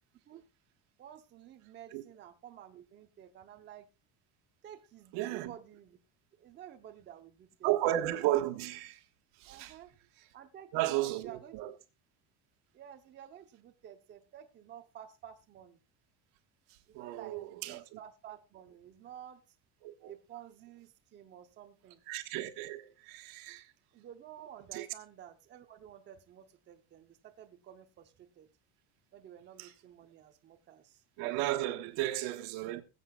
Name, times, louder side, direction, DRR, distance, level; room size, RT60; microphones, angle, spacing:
voice 1, 1.0-3.9 4.6-6.0 6.4-7.7 9.5-10.0 10.3-11.6 12.7-15.8 16.9-19.4 20.1-22.0 23.9-28.5 29.1-31.0, right 10 dB, 30° right, 0.9 m, -51 dB
voice 2, 5.1-5.5 7.6-9.0 9.4-9.8 10.7-11.7 16.9-18.0 19.8-20.1 22.1-23.7 24.7-24.9 29.6-29.7 31.2-32.8, right 15 dB, 75° right, 1.4 m, -34 dB
21.5 x 7.9 x 2.4 m
cardioid pair, 165°, 37 cm